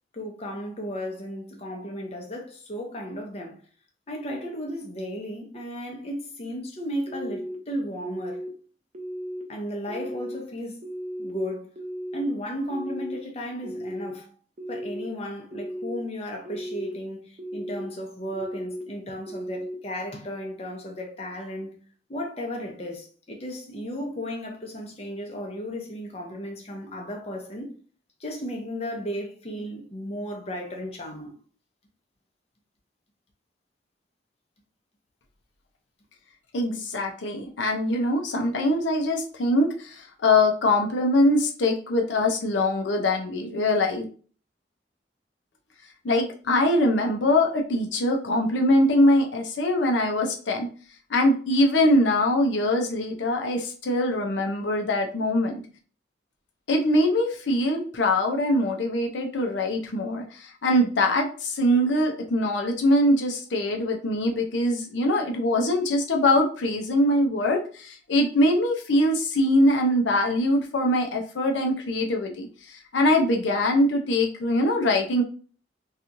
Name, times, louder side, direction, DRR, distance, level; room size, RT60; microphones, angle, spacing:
voice 1, 0.1-3.6 4.1-8.4 9.5-10.8 11.2-11.7 12.1-14.3 14.7-21.8 22.1-27.7 28.2-31.4, equal, 35° left, 0.6 m, -34 dB
sound 1, 7.1-7.6 8.0-8.5 8.9-9.4 9.9-10.4 10.8-11.3 11.8-12.2 12.7-13.2 13.6-14.1 14.6-15.1 15.5-16.0 16.5-16.9 17.4-17.9 18.3-18.8 19.3-19.8, equal, 40° right, 0.5 m, -35 dB
voice 2, 36.5-44.0 46.0-50.7 51.1-55.6 56.7-75.2, left 1 dB, 80° left, 0.5 m, -23 dB
2.9 x 2.4 x 2.5 m
head